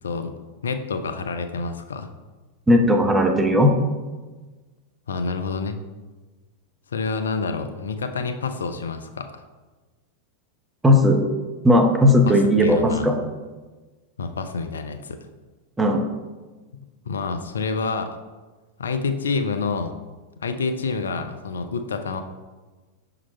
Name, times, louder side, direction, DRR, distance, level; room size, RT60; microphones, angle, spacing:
voice 1, 0.0-0.3 0.6-2.1 5.1-5.8 6.9-9.4 12.3-13.1 14.2-15.2 17.1-18.2 18.8-19.9 20.4-22.2, left 4 dB, 70° left, 8 dB, 0.4 m, -28 dB
voice 2, 2.7-3.7 10.8-11.2 11.6-13.1 15.8-16.1, left 1 dB, 10° right, 3 dB, 0.8 m, -16 dB
6.0 x 3.9 x 4.2 m, 1.3 s
figure-of-eight pair, 90°, 0 cm